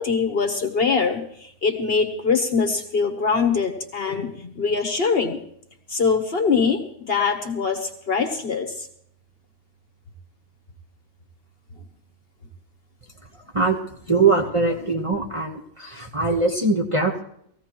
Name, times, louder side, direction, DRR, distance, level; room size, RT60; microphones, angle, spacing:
voice 1, 0.0-5.4 5.9-8.9, left 5 dB, 45° left, 4 dB, 1.2 m, -23 dB
voice 2, 14.1-17.2, right 3 dB, 25° right, -1 dB, 1.1 m, -22 dB
20.0 x 15.0 x 3.0 m, 0.69 s
omnidirectional pair, 1.5 m